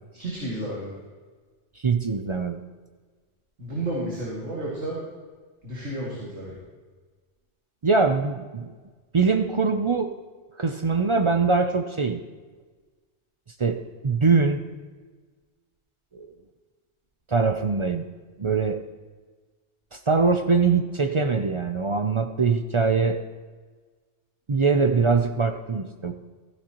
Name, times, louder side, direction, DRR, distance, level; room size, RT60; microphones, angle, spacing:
voice 1, 0.2-0.9 3.6-5.0 5.6-6.6, right 1 dB, 65° right, -6 dB, 2.7 m, -31 dB
voice 2, 1.8-2.6 7.8-8.7 9.1-10.1 10.6-12.2 13.6-14.6 16.1-16.3 17.3-18.0 18.4-18.8 19.9-23.2 24.5-26.1, right 4 dB, 50° right, 6 dB, 0.3 m, -22 dB
15.5 x 14.0 x 3.0 m, 1.4 s
omnidirectional pair, 1.3 m